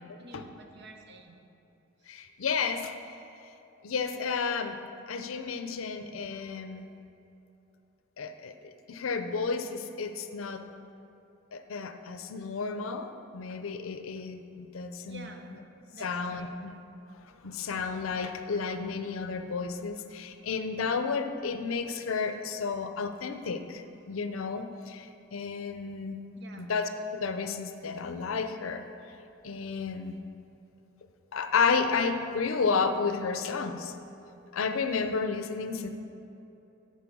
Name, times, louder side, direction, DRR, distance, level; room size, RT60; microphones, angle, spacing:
voice 1, 0.0-1.4 2.0-2.1 15.1-15.5 15.9-16.5 26.3-26.7, right 2 dB, 55° right, 3 dB, 0.8 m, -49 dB
voice 2, 2.1-2.9 3.8-4.8 5.1-6.9 8.2-10.6 11.5-15.3 16.0-16.7 17.4-26.2 26.6-28.8 29.4-30.2 31.3-33.9 34.5-35.9, left 5 dB, 75° left, 8 dB, 0.5 m, -32 dB
10.5 x 4.4 x 6.1 m, 2.9 s
head